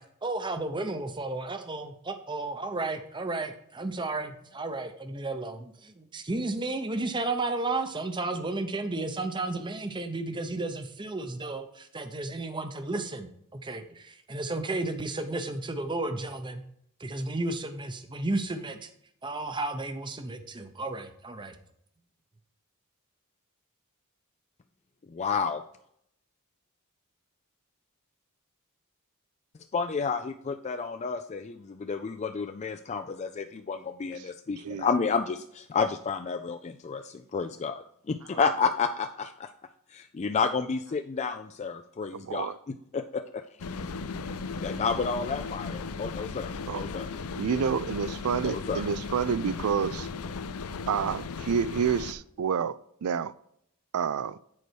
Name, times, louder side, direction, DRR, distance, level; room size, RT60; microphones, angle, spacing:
voice 1, 0.0-16.6 17.0-18.9 19.2-21.6, right 2 dB, 20° right, 0.7 m, -33 dB
voice 2, 25.1-25.6 29.7-39.5 39.9-43.4 44.6-47.1 48.4-48.8, left 5 dB, 30° left, 0.3 m, -31 dB
voice 3, 42.1-42.6 46.7-46.9 47.4-50.1 50.9-53.3 53.9-54.4, right 7 dB, 75° right, 0.4 m, -29 dB
sound 1, 43.6-52.1, left 4 dB, 80° left, 0.5 m, -36 dB
9.5 x 4.6 x 4.5 m
head